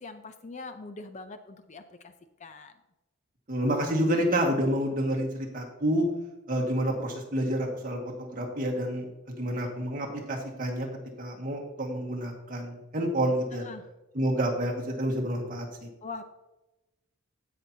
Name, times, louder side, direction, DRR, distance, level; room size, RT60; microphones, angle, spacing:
voice 1, 0.0-2.1 2.4-2.7 13.5-13.9 16.0-16.2, left 3 dB, 30° left, 9 dB, 0.5 m, -42 dB
voice 2, 3.5-6.1 6.5-10.9 11.2-13.7 14.1-15.9, right 1 dB, 40° right, -1 dB, 1.7 m, -29 dB
16.0 x 5.9 x 2.8 m, 1.0 s
head